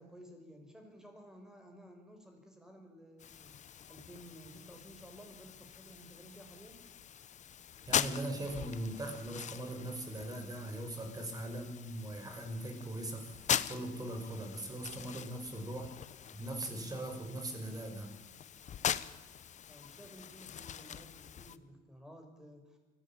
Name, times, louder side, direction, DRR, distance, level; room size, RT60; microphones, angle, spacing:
voice 1, 0.0-3.5 3.9-6.8 19.7-22.8, equal, 5° right, 4 dB, 5.5 m, -54 dB
sound 1, 3.2-21.6, left 9 dB, 45° left, 1.0 m, -41 dB
voice 2, 7.9-13.3 13.7-15.9 16.3-18.1, right 1 dB, 20° right, 4 dB, 5.3 m, -40 dB
24.0 x 16.5 x 8.9 m, 1.2 s
cardioid pair, 110°, 17 cm